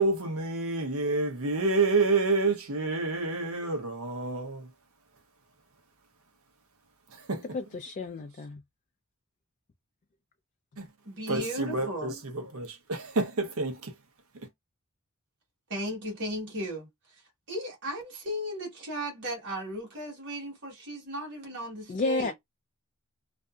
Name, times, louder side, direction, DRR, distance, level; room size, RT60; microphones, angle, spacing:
voice 1, 0.0-4.6 7.3-7.4 10.8-10.9 11.3-12.1 12.5-13.9, right 3 dB, 75° right, 0.8 m, -28 dB
voice 2, 7.5-8.6 21.9-22.3, left 3 dB, 35° left, 0.3 m, -31 dB
voice 3, 11.0-12.1 15.7-17.2 17.5-22.3, right 1 dB, 55° right, 1.3 m, -36 dB
2.6 x 2.6 x 2.3 m
head